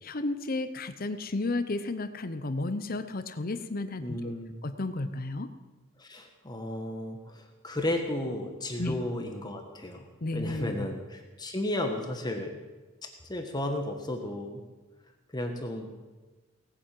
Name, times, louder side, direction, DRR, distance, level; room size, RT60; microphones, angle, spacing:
voice 1, 0.0-4.3 4.6-5.5 8.8-8.9 10.2-10.9, left 2 dB, 45° left, 11 dB, 0.7 m, -33 dB
voice 2, 4.0-4.5 6.0-12.6 13.2-14.6 15.3-16.0, left 1 dB, 20° left, 4 dB, 1.4 m, -34 dB
18.5 x 9.2 x 7.6 m, 1.3 s
head